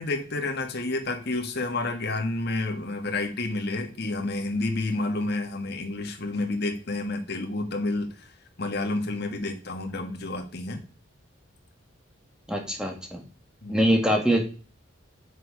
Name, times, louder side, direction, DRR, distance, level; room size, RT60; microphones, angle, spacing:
voice 1, 0.0-8.1 8.6-10.8 13.6-13.9, left 2 dB, 55° left, 3 dB, 1.7 m, -30 dB
voice 2, 12.5-13.2 13.7-14.4, equal, 5° right, 2 dB, 1.6 m, -23 dB
8.3 x 6.5 x 4.9 m, 0.38 s
head